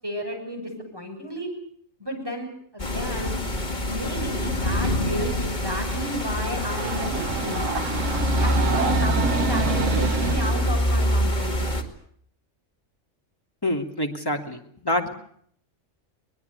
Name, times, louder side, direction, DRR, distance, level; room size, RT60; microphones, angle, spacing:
voice 1, 0.0-1.5 2.0-3.4 3.9-8.1 8.4-11.8, equal, 15° right, 1 dB, 7.3 m, -33 dB
sound 1, 2.8-11.8, left 1 dB, 35° left, 2.5 m, -25 dB
Train, 5.8-10.7, right 4 dB, 75° right, 1.6 m, -28 dB
voice 2, 13.6-14.6 14.8-15.1, left 1 dB, 15° left, 2 dB, 2.9 m, -26 dB
23.0 x 20.5 x 8.3 m, 0.64 s
omnidirectional pair, 1.4 m